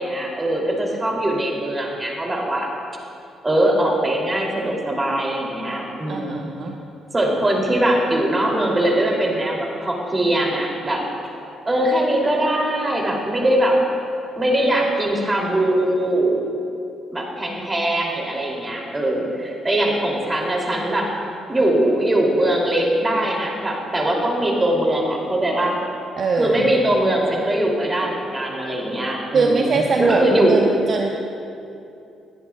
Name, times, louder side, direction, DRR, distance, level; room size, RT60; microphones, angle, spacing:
voice 1, 0.0-2.7 3.4-6.5 7.1-11.0 11.7-13.8 14.4-16.4 17.1-21.1 21.5-25.8 26.4-30.6, right 1 dB, 25° right, -1 dB, 2.9 m, -21 dB
voice 2, 6.1-6.8 26.2-26.7 29.3-30.2 30.5-31.1, right 4 dB, 55° right, 1 dB, 0.8 m, -22 dB
20.5 x 10.0 x 2.4 m, 2.6 s
supercardioid pair, 60°, 0 cm